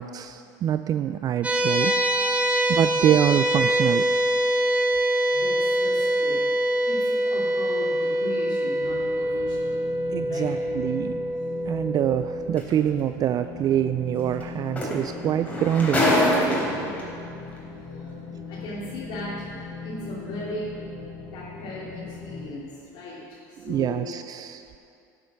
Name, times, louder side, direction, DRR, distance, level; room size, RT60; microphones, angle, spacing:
voice 1, 0.0-1.9 2.7-4.0 10.1-11.2 11.7-16.2 23.6-24.6, right 10 dB, 40° right, 10 dB, 0.4 m, -25 dB
sound 1, 1.4-12.6, right 1 dB, 15° right, 1.3 m, -24 dB
voice 2, 1.8-2.5 5.3-6.4 6.9-9.7 10.3-10.5 17.2-17.3 18.5-19.5 19.8-20.7 21.3-22.7 22.9-23.2 23.6-24.0, left 2 dB, 65° left, -8 dB, 2.9 m, -37 dB
sound 2, 8.8-22.4, left 4 dB, 85° left, 3.2 m, -39 dB
sound 3, 12.6-12.7 14.4-14.5 14.8-17.0 17.9-18.0, equal, 15° left, 3.5 m, -24 dB
13.5 x 7.3 x 6.4 m, 2.6 s
supercardioid pair, 95°, 10 cm